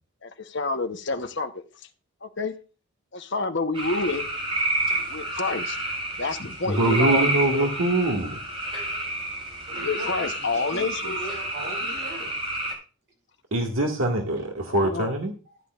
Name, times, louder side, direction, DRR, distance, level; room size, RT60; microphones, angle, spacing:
voice 1, 0.2-1.6 2.2-2.5 3.1-4.3 5.1-5.8 6.2-7.7 9.7-11.1 14.7-15.1, left 3 dB, 55° left, 1.0 m, -29 dB
sound 1, 3.7-12.7, right 1 dB, 25° right, 4.6 m, -29 dB
voice 2, 6.6-8.3 13.5-15.3, right 1 dB, 70° right, 1.9 m, -23 dB
voice 3, 9.7-12.3 15.5-15.6, right 1 dB, 50° right, 6.3 m, -39 dB
15.0 x 10.5 x 2.5 m
head